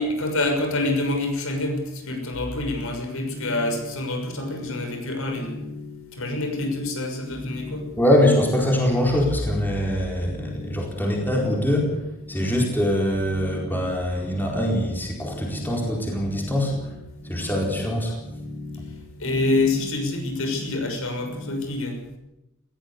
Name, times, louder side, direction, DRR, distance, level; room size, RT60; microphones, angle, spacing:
voice 1, 0.0-5.6 6.1-7.9 19.2-22.0, left 2 dB, 65° left, 4 dB, 6.4 m, -26 dB
sound 1, 2.7-21.6, left 2 dB, 40° left, 5.7 m, -38 dB
voice 2, 8.0-12.0 12.3-16.8 17.3-18.2, equal, 10° left, 0 dB, 4.4 m, -23 dB
20.5 x 16.5 x 8.3 m, 0.92 s
head